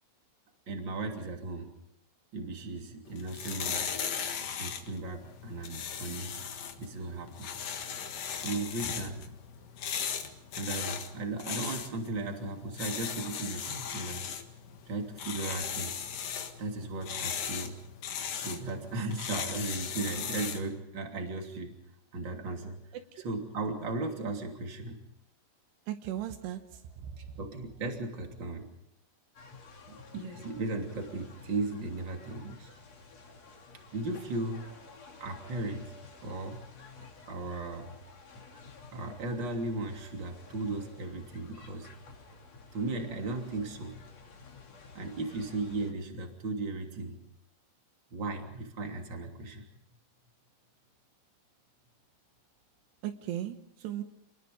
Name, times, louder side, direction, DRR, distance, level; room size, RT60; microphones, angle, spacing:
voice 1, 0.7-1.7 2.3-3.9 4.6-6.4 6.8-7.5 8.3-9.2 10.5-14.3 14.9-16.0 16.6-17.8 18.3-21.8 22.1-22.8 23.2-25.0 27.2-28.7 29.9-32.7 33.9-34.7 35.2-35.9 36.2-36.6 37.3-37.9 38.9-41.9 42.7-44.0 44.9-47.2 48.1-49.6, right 2 dB, 30° right, 3 dB, 3.1 m, -36 dB
sound 1, 3.1-20.7, left 7 dB, 55° left, 2.9 m, -38 dB
voice 2, 22.9-23.3 25.9-27.3 53.0-54.0, right 12 dB, 80° right, 8 dB, 3.2 m, -38 dB
sound 2, 29.3-45.9, left 4 dB, 40° left, 3.5 m, -52 dB
28.5 x 21.0 x 5.2 m, 0.79 s
omnidirectional pair, 5.0 m